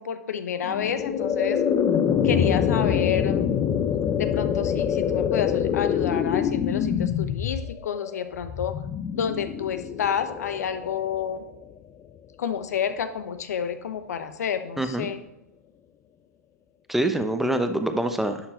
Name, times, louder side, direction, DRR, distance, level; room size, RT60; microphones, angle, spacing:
voice 1, 0.0-1.6 2.2-3.6 3.9-8.7 9.1-11.4 12.4-15.2, left 8 dB, 70° left, 10 dB, 1.0 m, -29 dB
sound 1, 0.6-11.8, left 8 dB, 25° left, 0.6 m, -25 dB
voice 2, 14.8-15.1 16.9-18.5, right 1 dB, 5° right, 7 dB, 0.9 m, -25 dB
11.5 x 5.8 x 4.4 m, 0.87 s
hypercardioid pair, 115°, 9 cm